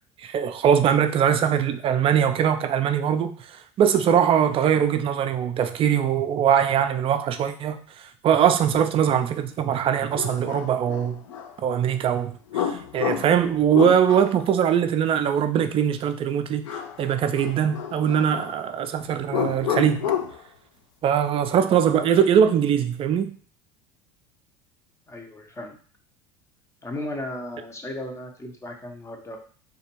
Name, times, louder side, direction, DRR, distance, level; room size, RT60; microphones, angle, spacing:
voice 1, 0.2-7.8 8.2-11.2 11.6-16.6 17.0-20.0 21.0-23.4, right 8 dB, 35° right, 0.3 m, -21 dB
sound 1, 9.5-9.6 10.2-11.5 12.5-14.5 16.7-17.1 17.3-18.5 19.3-20.4, left 9 dB, 80° left, 0.4 m, -30 dB
voice 2, 25.1-25.8 26.8-29.4, left 1 dB, 15° left, 0.6 m, -35 dB
2.4 x 2.2 x 2.8 m
hypercardioid pair, 80°, 16 cm